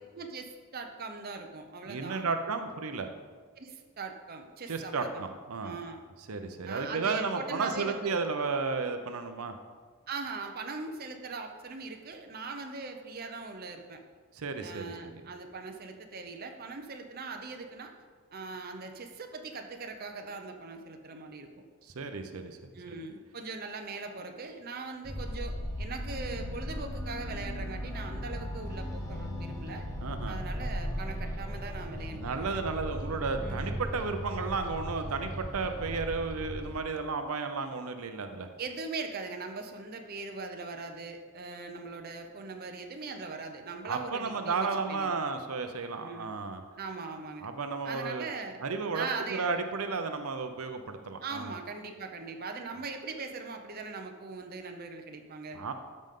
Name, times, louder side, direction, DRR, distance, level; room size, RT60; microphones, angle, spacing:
voice 1, 0.1-2.2 3.6-5.2 5.6-6.0 6.6-8.2 10.1-14.0 14.6-17.9 18.3-21.6 22.7-29.9 30.3-32.6 33.4-33.8 38.6-45.2 46.0-46.4 46.8-47.5 47.8-48.6 48.9-49.5 51.2-55.7, right 4 dB, 45° right, 4 dB, 0.7 m, -40 dB
voice 2, 1.9-3.1 4.7-5.8 6.3-9.5 14.3-14.8 21.8-22.6 22.9-23.0 30.0-30.4 32.1-38.5 43.8-46.6 47.4-48.3 48.6-49.1 49.3-51.6 55.5-55.7, right 4 dB, 85° right, 7 dB, 0.7 m, -33 dB
sound 1, 25.0-36.8, equal, 15° left, 0.8 m, -37 dB
13.0 x 5.2 x 3.7 m, 1.5 s
head